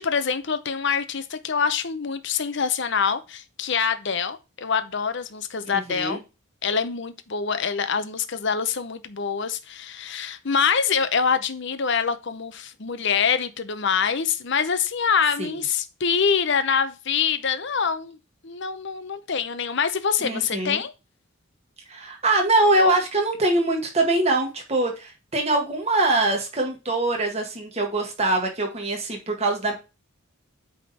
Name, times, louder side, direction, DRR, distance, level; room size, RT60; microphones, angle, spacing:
voice 1, 0.0-6.2 6.6-18.2 18.4-20.9, left 6 dB, 55° left, 0.8 m, -25 dB
voice 2, 5.7-6.2 15.4-15.5 20.2-20.8 21.9-29.7, right 2 dB, 30° right, 1.9 m, -23 dB
8.5 x 3.8 x 4.3 m
head